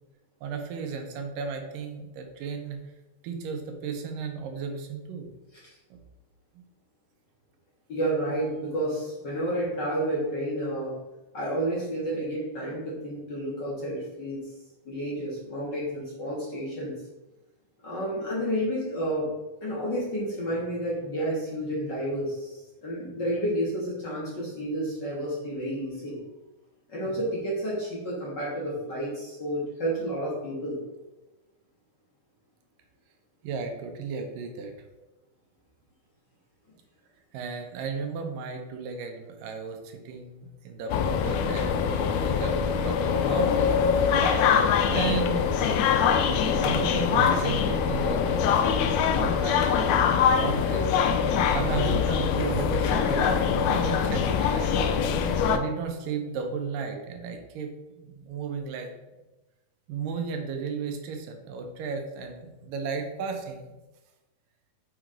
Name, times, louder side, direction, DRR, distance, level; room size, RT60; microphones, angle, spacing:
voice 1, 0.4-2.8 3.2-5.3 5.9-6.0 6.6-6.7 33.4-34.7 37.3-44.1 44.9-45.5 45.8-45.9 46.2-50.9 51.5-54.8 55.5-58.9 59.9-63.7, right 5 dB, 90° right, 4 dB, 2.5 m, -34 dB
voice 2, 7.9-10.9 11.3-14.5 14.8-17.0 17.8-19.3 19.6-26.2 26.9-30.8, right 1 dB, 45° left, -6 dB, 1.7 m, -30 dB
sound 1, 40.9-55.6, left 7 dB, 80° left, 1.7 m, -23 dB
7.0 x 4.7 x 3.8 m, 1.1 s
omnidirectional pair, 3.8 m